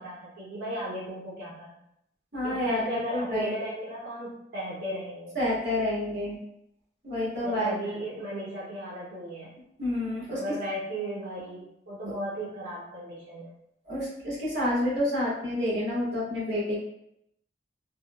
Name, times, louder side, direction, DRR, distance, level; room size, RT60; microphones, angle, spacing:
voice 1, 0.0-1.8 2.4-5.5 7.4-9.5 10.3-13.5, right 1 dB, 90° right, -8 dB, 0.8 m, -35 dB
voice 2, 2.3-3.5 5.3-6.4 7.0-7.7 9.8-10.4 13.9-16.8, left 1 dB, 65° right, -8 dB, 1.5 m, -29 dB
3.5 x 2.3 x 2.2 m, 0.78 s
head